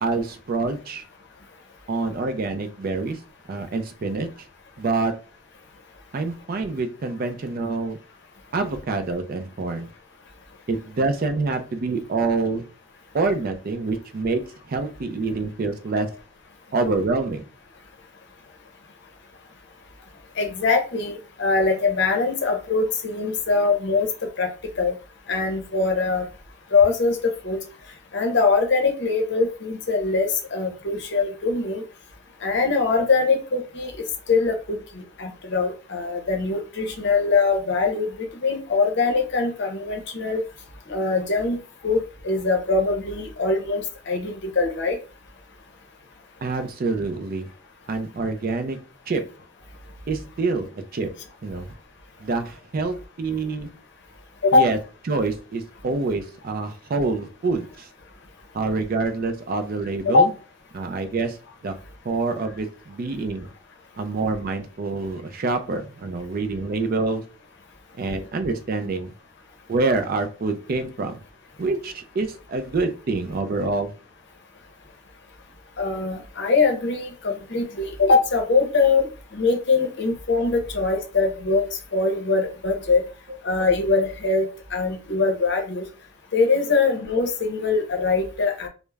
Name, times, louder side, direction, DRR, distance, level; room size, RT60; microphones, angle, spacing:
voice 1, 0.0-1.0 1.9-3.2 3.5-4.3 4.8-5.1 6.1-8.0 8.5-9.9 10.7-12.6 13.1-14.4 14.7-16.1 16.7-17.4 46.4-47.5 47.9-48.8 49.1-49.2 50.1-51.1 51.4-51.7 52.2-53.7 54.5-54.8 55.1-57.9 58.5-60.3 60.7-61.4 61.6-61.7 62.1-63.5 64.0-67.2 68.0-69.1 69.7-71.2 71.6-73.9, right 3 dB, 45° right, 7 dB, 0.4 m, -26 dB
voice 2, 20.4-24.1 24.4-24.5 24.8-24.9 25.3-26.2 26.7-27.6 28.1-31.8 32.4-33.9 34.3-34.8 35.2-38.1 38.4-40.4 40.9-41.6 41.8-45.0 54.4-54.6 60.0-60.3 75.8-79.1 79.3-81.6 81.9-83.0 83.4-85.9 86.3-88.7, left 4 dB, 55° left, 3 dB, 0.7 m, -22 dB
2.3 x 2.0 x 3.2 m, 0.35 s
head